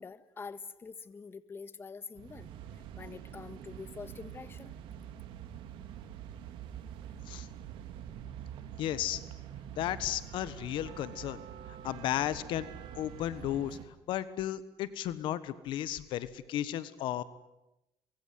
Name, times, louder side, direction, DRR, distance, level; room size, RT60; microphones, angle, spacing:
voice 1, 0.0-2.5 3.0-4.7, left 5 dB, 25° left, 13 dB, 1.6 m, -45 dB
sound 1, 2.1-13.9, right 10 dB, 80° right, 2.8 m, -46 dB
voice 2, 8.8-9.2 9.8-11.4 11.7-12.7 12.9-13.8 14.1-17.2, left 12 dB, 75° left, 15 dB, 1.4 m, -34 dB
24.0 x 23.0 x 9.5 m, 0.94 s
cardioid pair, 115°, 9 cm